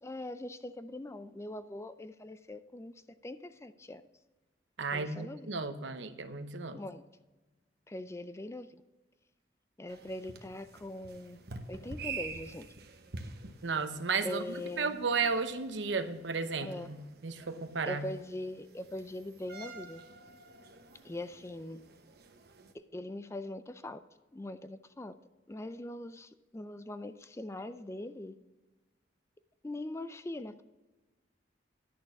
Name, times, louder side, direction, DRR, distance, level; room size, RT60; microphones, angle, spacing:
voice 1, 0.0-2.9 3.2-4.0 4.9-5.7 6.7-7.0 7.9-8.8 9.8-11.4 11.7-12.7 14.2-15.0 16.6-16.9 17.8-20.0 21.0-21.8 22.7-24.0 24.3-25.2 25.5-28.3 29.6-30.6, left 1 dB, 15° left, 12 dB, 0.4 m, -42 dB
voice 2, 4.8-6.8 13.6-14.4 14.8-17.0 17.2-18.0, right 4 dB, 80° right, 10 dB, 0.9 m, -33 dB
sound 1, 9.9-22.7, right 4 dB, 60° right, 1.0 m, -48 dB
11.0 x 6.6 x 5.8 m, 1.2 s
head